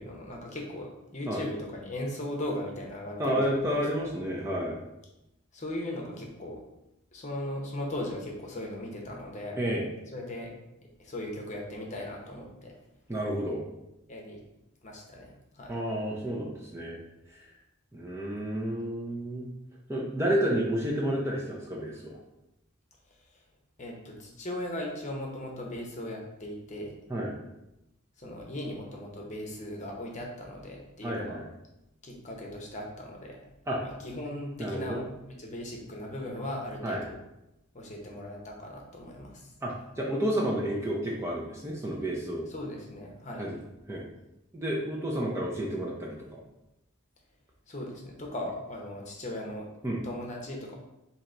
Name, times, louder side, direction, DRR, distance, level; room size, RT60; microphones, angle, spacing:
voice 1, 0.0-3.6 4.0-4.1 5.5-6.6 7.1-9.6 10.1-10.5 11.0-12.7 14.1-14.4 14.8-15.8 23.3-23.4 23.8-26.9 28.2-31.4 32.0-33.4 33.8-35.0 35.3-37.2 37.7-39.5 42.5-43.5 47.7-49.7 50.0-50.7, left 1 dB, 35° left, 0 dB, 0.8 m, -38 dB
voice 2, 3.2-4.8 9.6-9.8 13.1-13.6 15.7-17.0 17.9-19.5 19.9-22.1 27.1-27.3 31.0-31.4 33.7-33.8 34.6-35.0 36.8-37.0 39.6-42.5 43.4-43.6 43.9-44.1 44.5-46.4 49.8-50.0, equal, 10° right, -3 dB, 0.5 m, -30 dB
3.9 x 2.9 x 4.3 m, 0.90 s
head